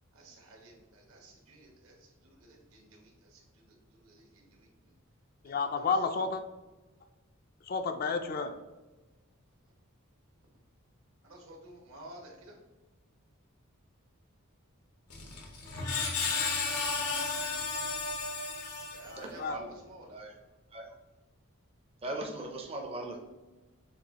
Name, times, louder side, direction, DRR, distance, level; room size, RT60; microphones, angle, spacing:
voice 1, 0.1-2.1 2.4-3.4 3.7-4.7 5.4-5.8 11.2-12.6 18.9-20.1, right 1 dB, 75° right, 1.0 m, -53 dB
voice 2, 5.4-6.4 7.7-8.5 19.1-19.6, left 4 dB, 40° left, 0.3 m, -31 dB
Screech, 15.1-19.4, left 4 dB, 90° left, 0.9 m, -33 dB
voice 3, 19.2-19.7 20.1-20.3 20.7-20.9 22.0-23.2, right 1 dB, 25° right, 0.5 m, -39 dB
7.1 x 2.4 x 2.8 m
head